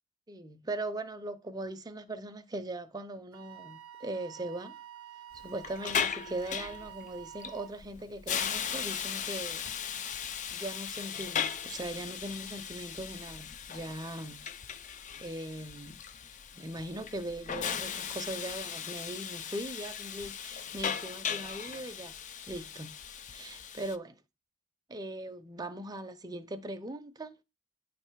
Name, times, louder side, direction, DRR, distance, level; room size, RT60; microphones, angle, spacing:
voice 1, 0.3-4.7 5.4-9.7 10.5-14.4 15.2-16.0 16.5-22.1 22.5-22.9 23.3-24.2 24.9-27.4, right 1 dB, 20° right, 0.6 m, -40 dB
Wind instrument woodwind instrument, 3.3-7.8, right 11 dB, 65° right, 0.5 m, -49 dB
Hiss, 5.3-24.0, left 8 dB, 35° left, 0.4 m, -37 dB
9.5 x 3.3 x 4.6 m
head